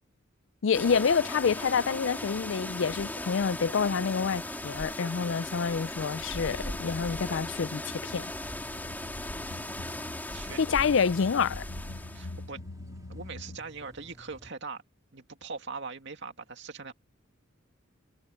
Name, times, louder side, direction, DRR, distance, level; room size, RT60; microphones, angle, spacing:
voice 1, 0.6-8.3 10.6-11.6, left 6 dB, 60° left, 0.4 m, -27 dB
sound 1, 0.7-12.4, left 1 dB, 10° left, 2.7 m, -38 dB
sound 2, 3.6-13.6, left 2 dB, 85° left, 1.1 m, -46 dB
sound 3, 7.5-14.5, equal, 15° right, 2.6 m, -54 dB
voice 2, 10.3-10.6 12.1-12.6 13.1-14.8 15.1-16.9, right 4 dB, 60° right, 2.3 m, -41 dB
head